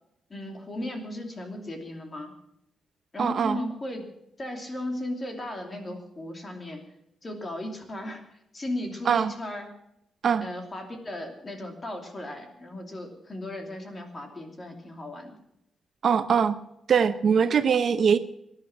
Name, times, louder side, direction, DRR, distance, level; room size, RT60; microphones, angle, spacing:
voice 1, 0.3-2.3 3.1-4.0 4.4-6.8 7.2-8.2 8.5-9.7 10.4-15.3, left 1 dB, 25° left, 4 dB, 2.9 m, -36 dB
voice 2, 3.2-3.6 9.1-9.3 10.2-10.4 16.0-16.6 16.9-18.2, right 7 dB, 50° right, 11 dB, 0.7 m, -22 dB
20.0 x 10.5 x 6.1 m, 0.81 s
wide cardioid pair, 160°, 0 cm